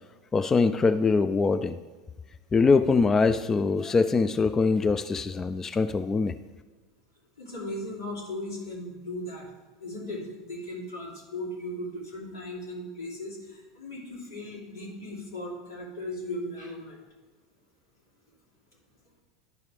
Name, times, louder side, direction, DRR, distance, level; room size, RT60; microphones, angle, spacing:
voice 1, 0.3-1.8 2.5-6.3, left 4 dB, 20° left, 11 dB, 0.3 m, -23 dB
voice 2, 7.4-9.5 9.8-17.0, left 1 dB, 90° left, -5 dB, 2.7 m, -37 dB
11.0 x 5.3 x 3.2 m, 1.2 s
hypercardioid pair, 90°, 2 cm